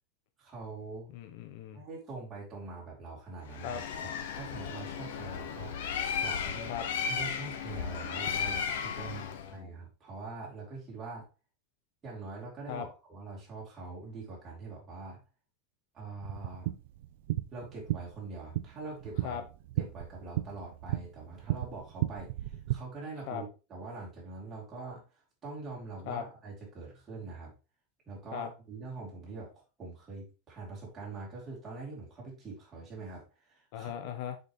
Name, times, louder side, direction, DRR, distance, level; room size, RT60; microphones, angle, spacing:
voice 1, 0.4-1.1 1.7-3.8 4.3-6.7 7.1-11.3 12.0-15.2 15.9-16.7 17.5-19.4 19.8-25.0 25.4-27.5 28.1-33.9, right 3 dB, 15° right, -5 dB, 2.9 m, -44 dB
voice 2, 1.1-1.8 3.6-3.8 6.7-6.9 9.0-9.7 12.7-12.9 19.2-19.4 23.3-23.4 26.1-26.2 28.3-28.5 33.7-34.4, left 9 dB, 50° left, 7 dB, 0.8 m, -38 dB
Bird, 3.5-9.5, left 7 dB, 70° left, 1.0 m, -35 dB
sound 1, 16.2-22.8, right 15 dB, 60° right, 0.5 m, -35 dB
6.7 x 5.2 x 3.1 m, 0.31 s
supercardioid pair, 170°, 0 cm